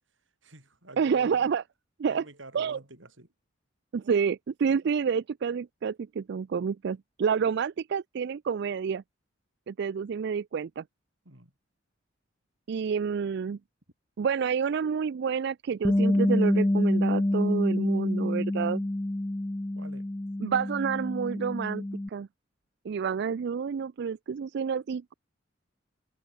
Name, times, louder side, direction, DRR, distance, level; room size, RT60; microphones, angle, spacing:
voice 1, 0.4-1.5 2.1-3.3 11.2-11.5 19.8-20.1, right 2 dB, 75° right, 7.9 m, -47 dB
voice 2, 1.0-1.6 2.0-2.2 2.5-2.8 3.9-9.0 9.7-10.8 12.7-13.6 14.2-18.8 20.4-22.3 22.8-25.1, right 6 dB, 60° right, 0.4 m, -29 dB
Bass guitar, 15.8-22.1, left 1 dB, 15° left, 0.4 m, -27 dB
head